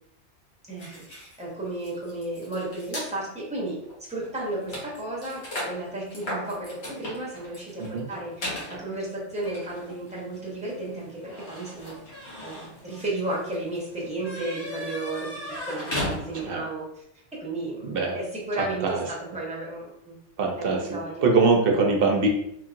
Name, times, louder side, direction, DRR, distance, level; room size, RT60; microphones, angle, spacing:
voice 1, 0.7-5.4 5.7-11.9 12.4-15.3 15.7-17.0 17.4-20.2 20.6-21.2, right 2 dB, 5° right, -6 dB, 0.9 m, -33 dB
sound 1, 0.8-3.1 3.8-4.0 4.2-16.7, left 1 dB, 70° left, 1.3 m, -37 dB
voice 2, 17.8-18.2 18.8-19.0 20.4-22.3, right 4 dB, 60° right, 1 dB, 0.7 m, -23 dB
3.0 x 2.7 x 2.5 m, 0.75 s
omnidirectional pair, 1.2 m